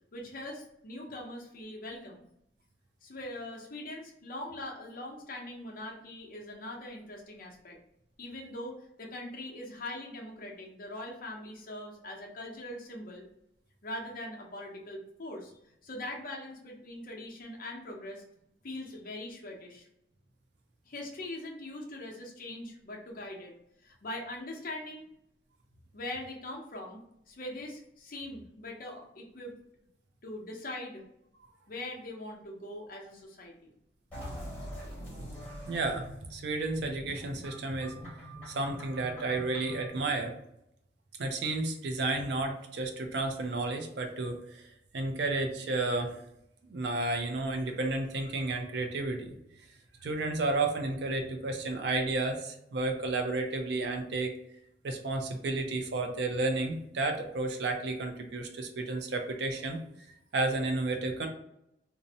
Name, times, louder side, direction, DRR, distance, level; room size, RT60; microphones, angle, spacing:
voice 1, 0.1-2.3 3.0-7.8 8.2-13.2 13.8-15.5 15.8-18.2 18.6-19.9 20.8-23.5 23.8-25.0 25.9-27.0 27.3-29.5 30.2-31.0 31.7-33.7, left 1 dB, 50° left, -1 dB, 0.7 m, -42 dB
sound 1, 34.1-39.9, equal, 5° left, 1.2 m, -44 dB
voice 2, 35.7-37.9 38.5-40.3 41.2-44.6 44.9-46.2 46.7-49.3 50.0-54.3 54.8-59.8 60.3-61.3, right 2 dB, 65° right, 4 dB, 0.4 m, -32 dB
2.6 x 2.0 x 2.7 m, 0.78 s
head